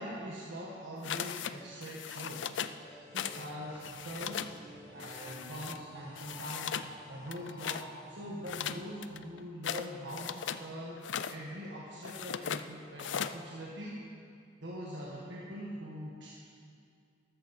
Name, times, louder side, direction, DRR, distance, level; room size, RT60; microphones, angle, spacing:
voice 1, 0.0-2.6 3.1-4.5 4.9-14.1 14.6-16.3, equal, 80° right, -5 dB, 1.7 m, -43 dB
sound 1, 1.0-1.5 1.8-2.8 3.1-3.5 3.7-4.5 5.0-5.8 6.2-6.9 7.3-7.9 8.4-10.6 11.0-11.4 12.0-12.6 13.0-13.4, left 8 dB, 85° left, 0.5 m, -38 dB
sound 2, 2.7-9.7, right 1 dB, 15° left, 3.2 m, -54 dB
13.5 x 13.0 x 4.3 m, 2.4 s
head